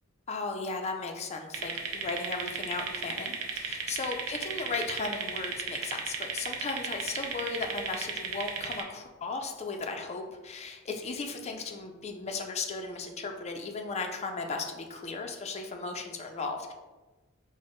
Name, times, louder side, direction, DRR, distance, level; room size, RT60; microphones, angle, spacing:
voice 1, 0.3-16.7, left 3 dB, 30° left, 3 dB, 0.4 m, -36 dB
sound 1, 1.5-8.8, right 5 dB, 75° right, 0.6 m, -35 dB
4.5 x 2.1 x 4.4 m, 1.2 s
head